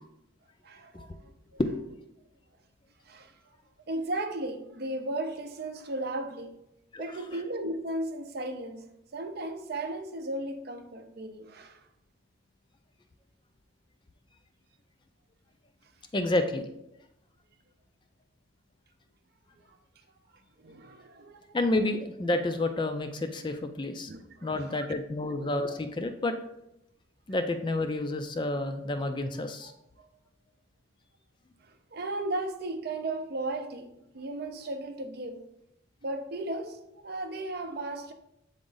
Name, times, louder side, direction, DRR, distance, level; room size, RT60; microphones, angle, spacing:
voice 1, 0.6-1.1 1.5-1.6 3.1-3.3 3.9-6.6 7.0-11.8 19.7-19.8 20.6-21.4 24.1-24.9 25.4-25.5 29.6-29.7 30.0-30.1 31.7-35.5 36.0-38.1, right 2 dB, 50° right, 0.6 m, -36 dB
voice 2, 16.1-16.6 21.5-24.1 24.4-26.3 27.3-29.7, left 2 dB, 25° left, 0.4 m, -29 dB
7.9 x 3.7 x 3.9 m
head